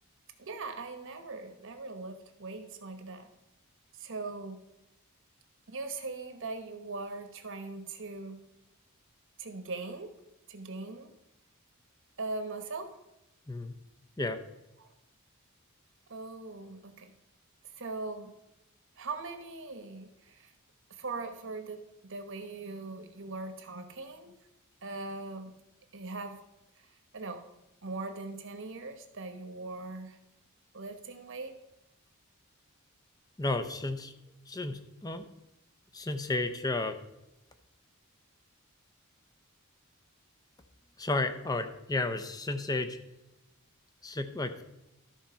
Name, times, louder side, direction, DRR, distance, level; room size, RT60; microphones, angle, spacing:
voice 1, 0.4-3.3 4.0-4.6 5.7-8.4 9.4-10.1 10.5-11.1 12.2-13.0 14.8-14.9 16.1-17.1 17.8-18.3 19.0-20.5 21.0-24.3 24.8-25.5 25.9-26.4 26.8-26.9 27.1-27.4 27.8-30.2 30.7-31.5, right 3 dB, 60° right, 7 dB, 1.1 m, -40 dB
voice 2, 33.4-34.1 34.5-35.3 35.9-37.0 41.0-43.0 44.0-44.6, left 2 dB, 15° left, 7 dB, 0.7 m, -32 dB
13.0 x 4.4 x 5.6 m, 0.93 s
head